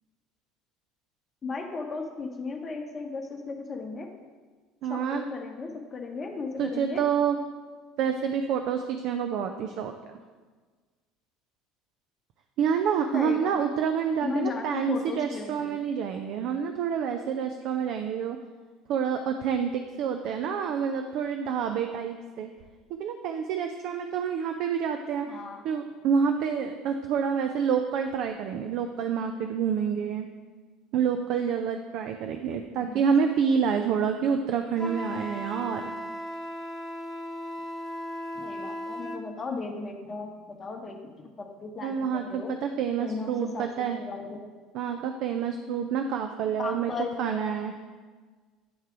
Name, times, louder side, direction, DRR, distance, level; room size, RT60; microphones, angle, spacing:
voice 1, 1.4-4.1 4.9-7.0 13.1-13.8 14.2-15.8 25.3-25.6 32.6-33.1 38.3-41.1 41.4-42.6 43.0-44.7 46.6-47.6, left 4 dB, 30° left, 3 dB, 0.9 m, -36 dB
voice 2, 4.8-5.2 6.6-7.4 8.0-9.9 12.6-18.4 18.9-22.5 22.9-30.3 30.9-35.8 41.8-44.0 44.7-46.9 47.2-47.7, right 7 dB, 55° right, 6 dB, 0.4 m, -28 dB
Wind instrument woodwind instrument, 34.8-39.2, equal, 10° right, 0.8 m, -36 dB
9.5 x 3.3 x 4.8 m, 1.4 s
figure-of-eight pair, 65°, 0 cm